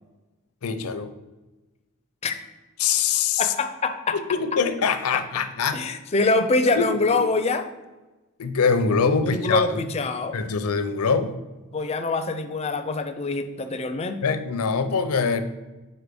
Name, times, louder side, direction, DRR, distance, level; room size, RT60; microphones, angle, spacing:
voice 1, 0.6-1.1 2.8-3.5 4.1-5.9 6.2-6.3 6.8-7.2 8.4-9.9 10.3-11.4 14.2-15.4, left 5 dB, 85° left, 10 dB, 0.6 m, -24 dB
voice 2, 3.4-4.2 5.7-7.7 9.2-10.3 11.7-14.2, left 3 dB, 30° left, 8 dB, 0.4 m, -24 dB
4.7 x 4.4 x 5.2 m, 1.1 s
head